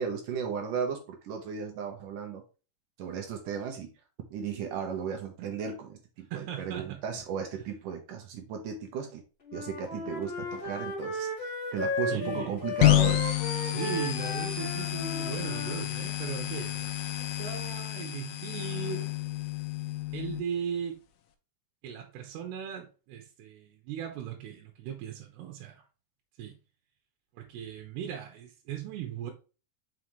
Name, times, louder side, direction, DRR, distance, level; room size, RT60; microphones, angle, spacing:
voice 1, 0.0-2.4 3.0-3.9 4.3-9.2 9.5-13.2, right 7 dB, 65° right, 2.3 m, -35 dB
voice 2, 6.3-7.0 12.1-12.6 13.7-19.2 20.1-21.0 21.8-25.8 26.4-26.6 27.3-29.3, right 8 dB, 80° right, 3.1 m, -38 dB
Wind instrument woodwind instrument, 9.5-15.8, left 2 dB, 55° left, 0.6 m, -35 dB
sound 1, 12.8-20.4, left 15 dB, 75° left, 2.1 m, -29 dB
5.8 x 5.7 x 3.2 m
omnidirectional pair, 4.7 m